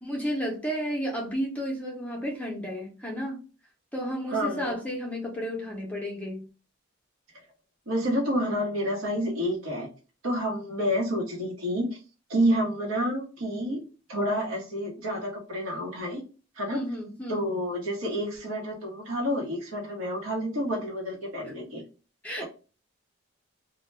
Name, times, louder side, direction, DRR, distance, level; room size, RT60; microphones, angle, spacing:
voice 1, 0.0-3.4 3.9-6.5 16.7-17.5 22.2-22.4, equal, 5° left, -2 dB, 0.5 m, -32 dB
voice 2, 4.3-4.7 7.9-9.9 10.2-11.9 12.3-13.8 14.1-16.2 16.6-16.8 17.3-21.8 22.4-22.5, equal, 80° right, 0 dB, 0.9 m, -29 dB
2.1 x 2.1 x 3.2 m, 0.35 s
head